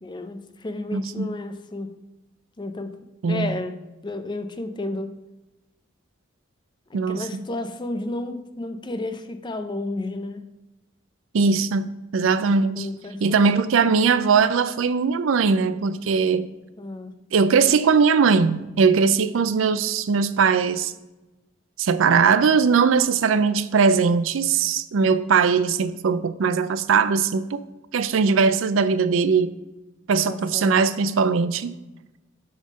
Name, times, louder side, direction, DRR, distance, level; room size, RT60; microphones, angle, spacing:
voice 1, 0.0-1.9 2.6-3.0 3.3-5.1 6.9-10.5 12.7-13.9 16.8-17.1 30.3-30.8, left 2 dB, 25° left, 9 dB, 0.5 m, -32 dB
voice 2, 0.9-1.3 3.2-3.6 6.9-7.5 11.3-11.9 12.1-12.9 13.2-16.5 17.3-20.9 21.8-27.6 27.9-29.5 30.1-31.7, right 5 dB, 75° right, 13 dB, 0.4 m, -20 dB
8.1 x 3.6 x 6.1 m, 1.0 s
head